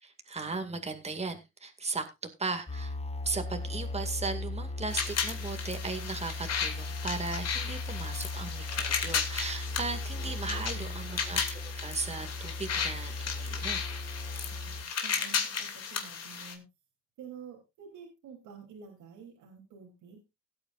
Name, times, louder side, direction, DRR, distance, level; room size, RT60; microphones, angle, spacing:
voice 1, 0.0-2.1 2.4-2.9 3.2-13.8, right 3 dB, 20° right, 6 dB, 2.2 m, -37 dB
sound 1, 2.7-14.8, left 2 dB, 20° left, 1.2 m, -38 dB
sound 2, 4.9-16.5, left 6 dB, 55° left, 2.5 m, -35 dB
voice 2, 10.4-11.1 14.4-16.6 17.2-20.2, right 6 dB, 85° right, 0 dB, 3.3 m, -49 dB
18.0 x 8.8 x 2.5 m, 0.24 s
cardioid pair, 90°, 30 cm